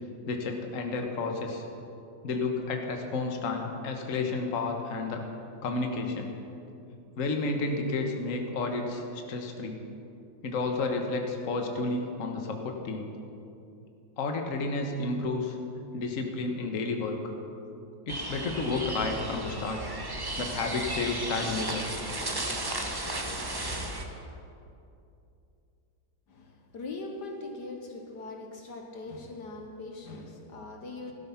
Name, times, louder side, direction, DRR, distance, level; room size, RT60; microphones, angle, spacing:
voice 1, 0.3-1.6 2.2-5.2 5.6-6.3 7.2-9.8 10.4-13.1 14.2-15.6 15.9-17.2 18.1-19.8 20.4-21.8, left 3 dB, 45° left, 3 dB, 1.6 m, -31 dB
sound 1, 18.1-24.0, right 1 dB, 15° right, 0.9 m, -34 dB
voice 2, 26.3-31.1, left 3 dB, 65° left, 2 dB, 1.7 m, -41 dB
16.5 x 13.0 x 5.8 m, 2.7 s
omnidirectional pair, 2.0 m